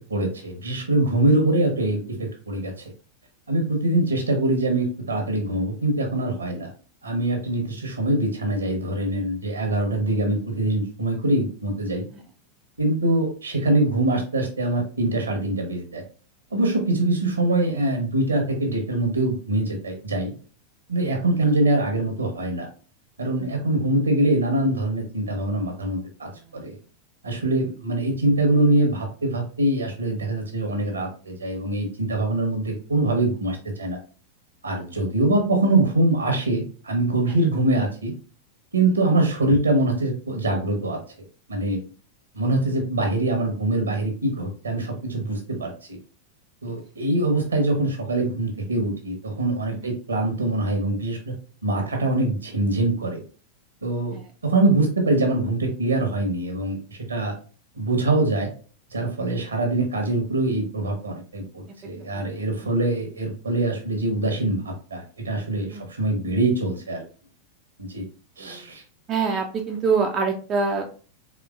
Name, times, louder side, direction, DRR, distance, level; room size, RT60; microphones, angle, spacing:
voice 1, 0.1-2.9 3.5-6.7 7.0-12.0 12.8-16.0 16.5-20.3 20.9-22.7 23.2-26.8 27.2-34.0 34.6-38.1 38.7-41.0 41.5-41.8 42.3-46.0 46.6-51.3 51.6-53.2 53.8-56.8 57.1-57.3 57.7-58.5 58.9-67.0 67.8-68.0 68.4-68.8, right 2 dB, 75° right, 4 dB, 1.1 m, -23 dB
voice 2, 69.1-70.8, right 5 dB, 30° right, 2 dB, 0.5 m, -25 dB
4.3 x 3.5 x 2.4 m, 0.39 s
figure-of-eight pair, 90°, 0 cm